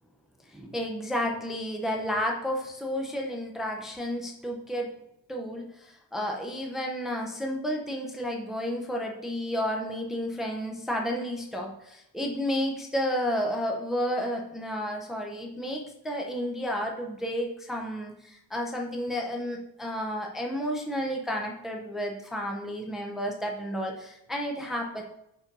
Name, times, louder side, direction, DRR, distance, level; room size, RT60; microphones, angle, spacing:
voice 1, 0.5-4.9 5.3-25.0, equal, ahead, 0 dB, 0.6 m, -31 dB
5.4 x 4.9 x 5.2 m, 0.81 s
cardioid pair, 170°, 43 cm